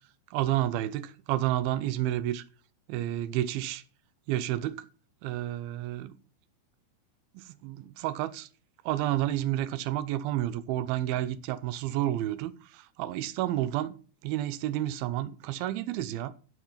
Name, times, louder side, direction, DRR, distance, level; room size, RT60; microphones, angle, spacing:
voice 1, 0.3-2.4 2.9-3.8 4.3-4.9 5.2-6.2 7.3-8.5 8.9-14.0 14.2-16.3, right 13 dB, 85° right, 2.6 m, -30 dB
14.0 x 4.9 x 5.7 m
omnidirectional pair, 4.3 m